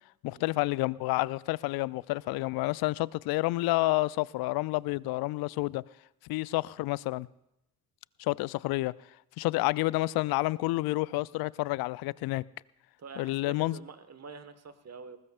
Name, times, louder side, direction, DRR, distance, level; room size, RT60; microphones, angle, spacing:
voice 1, 0.2-5.8 6.2-7.3 8.2-8.9 9.4-12.4 13.2-13.8, left 20 dB, 50° left, 0.5 m, -29 dB
voice 2, 13.0-15.2, right 5 dB, 30° right, 1.5 m, -46 dB
20.5 x 20.0 x 2.5 m
hypercardioid pair, 50°, 48 cm